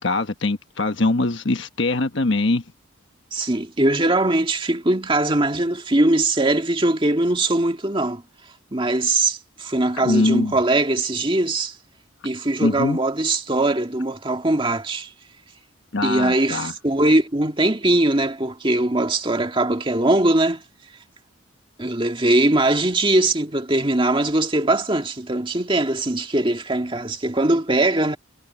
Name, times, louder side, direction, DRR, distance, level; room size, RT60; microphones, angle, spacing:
voice 1, 0.0-2.6 10.0-10.5 12.6-13.0 15.9-16.7, left 2 dB, 60° left, 1.2 m, -22 dB
voice 2, 3.3-8.2 8.7-11.8 12.2-15.1 16.0-20.6 21.8-28.2, right 2 dB, 25° right, 1.9 m, -21 dB
head